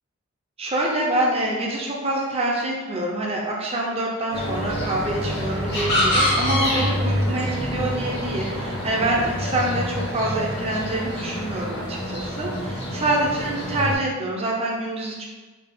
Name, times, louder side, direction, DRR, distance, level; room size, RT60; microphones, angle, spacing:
voice 1, 0.6-15.2, right 1 dB, 30° right, -2 dB, 0.5 m, -26 dB
sound 1, 4.3-13.9, equal, 50° left, 1.2 m, -26 dB
4.0 x 2.3 x 3.6 m, 1.3 s
head